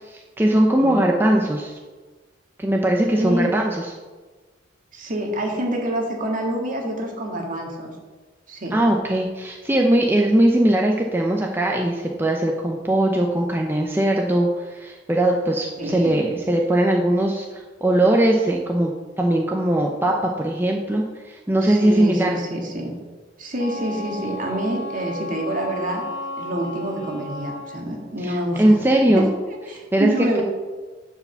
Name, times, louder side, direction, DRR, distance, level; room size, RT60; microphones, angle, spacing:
voice 1, 0.0-1.7 2.6-3.8 8.7-22.4 28.2-29.3 29.7-30.1, right 1 dB, 10° right, 0 dB, 0.7 m, -20 dB
voice 2, 3.2-3.6 4.9-7.9 8.5-8.8 15.8-16.2 21.6-23.0 23.4-26.0 26.4-28.8 29.2-29.3 29.7-30.4, right 1 dB, 45° right, 1 dB, 1.9 m, -27 dB
Wind instrument woodwind instrument, 23.6-27.9, left 1 dB, 80° left, 1.3 m, -34 dB
10.0 x 5.0 x 6.9 m, 1.3 s
head